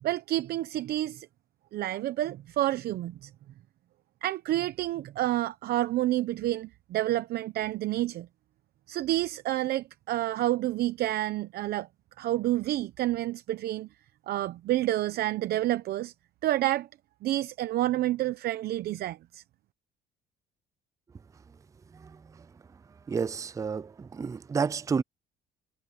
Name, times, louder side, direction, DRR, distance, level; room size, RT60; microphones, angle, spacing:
voice 1, 0.0-1.3 1.7-3.3 4.2-8.3 8.9-11.9 12.2-13.9 14.3-16.1 16.4-16.9 17.2-19.4, right 14 dB, 70° right, 0.8 m, -29 dB
voice 2, 21.9-22.5 23.1-25.0, right 5 dB, 20° right, 0.4 m, -31 dB
cardioid pair, 110°, 17 cm